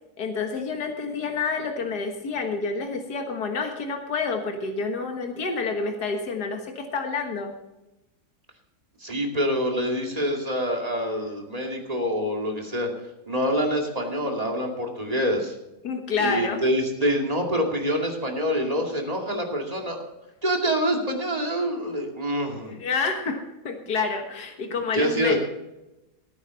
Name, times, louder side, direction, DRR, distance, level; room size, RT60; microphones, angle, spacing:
voice 1, 0.2-7.5 15.8-16.6 22.6-25.4, left 4 dB, 85° left, 4 dB, 2.0 m, -28 dB
voice 2, 9.0-12.9 13.3-15.5 16.2-20.0 20.4-22.8 24.9-25.4, equal, 25° right, 1 dB, 2.5 m, -26 dB
17.5 x 9.7 x 4.1 m, 0.97 s
omnidirectional pair, 1.7 m